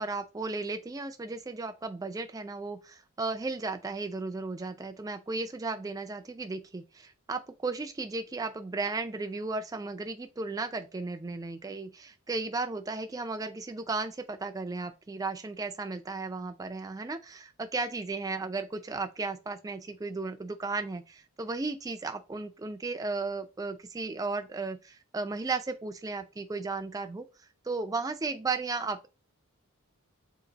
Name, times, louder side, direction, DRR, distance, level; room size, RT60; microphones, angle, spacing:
voice 1, 0.0-27.3 27.7-29.1, right 3 dB, 15° right, 0.3 m, -35 dB
3.9 x 2.5 x 3.9 m
head